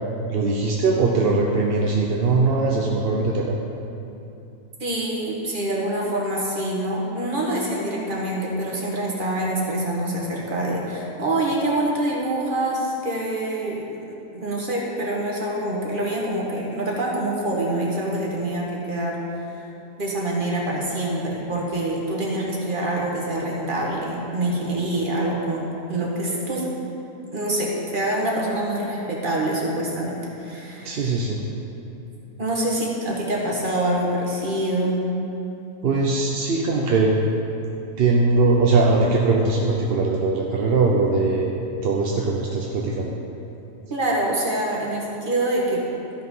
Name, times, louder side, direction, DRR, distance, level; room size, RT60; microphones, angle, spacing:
voice 1, 0.3-3.5 30.8-31.4 35.8-37.2 38.0-43.1, right 3 dB, 50° right, -1 dB, 0.7 m, -21 dB
voice 2, 4.8-14.0 14.3-19.2 20.0-26.6 27.3-31.1 32.4-35.0 43.9-45.8, right 1 dB, 35° right, -3 dB, 1.7 m, -25 dB
13.0 x 5.8 x 5.5 m, 2.8 s
omnidirectional pair, 1.7 m